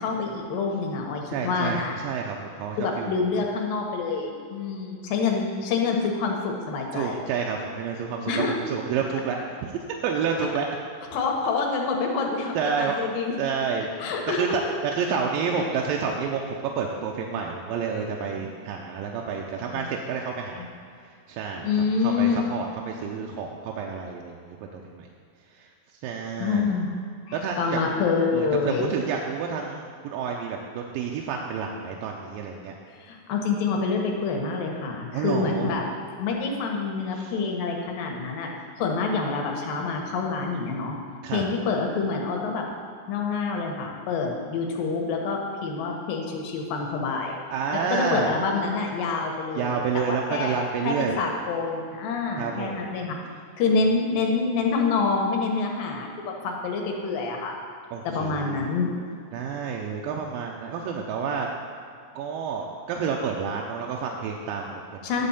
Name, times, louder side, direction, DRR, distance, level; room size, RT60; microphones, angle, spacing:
voice 1, 0.0-2.0 2.8-7.2 8.3-8.6 11.1-13.4 14.0-14.8 15.5-15.7 18.4-18.5 19.7-19.8 20.6-20.7 21.6-22.4 26.4-26.9 27.3-28.9 33.0-35.9 36.2-38.5 38.8-41.0 41.3-42.7 43.1-47.4 47.7-53.2 53.6-57.5 58.0-58.9 65.0-65.3, left 4 dB, 75° left, 1 dB, 2.8 m, -27 dB
voice 2, 1.3-3.1 6.9-8.3 8.7-9.7 10.0-10.7 12.6-13.0 13.4-13.9 14.3-20.7 21.3-21.7 22.0-24.6 24.9-25.1 26.0-26.7 27.3-27.8 28.3-32.7 35.1-35.7 37.2-37.3 41.2-41.4 47.5-48.3 49.6-51.2 52.4-52.9 57.9-58.6 59.3-61.5 62.2-65.3, right 6 dB, 85° right, 0 dB, 2.4 m, -29 dB
10.5 x 4.2 x 7.1 m, 2.4 s
omnidirectional pair, 4.0 m